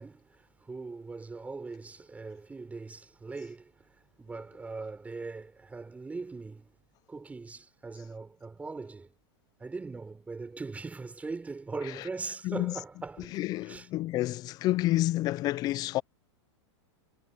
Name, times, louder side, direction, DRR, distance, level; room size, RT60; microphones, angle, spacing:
voice 1, 0.0-6.7 7.1-9.1 9.6-13.9, right 3 dB, 10° right, 3.7 m, -41 dB
voice 2, 12.4-12.7 13.3-16.0, left 16 dB, 25° left, 0.3 m, -29 dB
supercardioid pair, 145°, 15 cm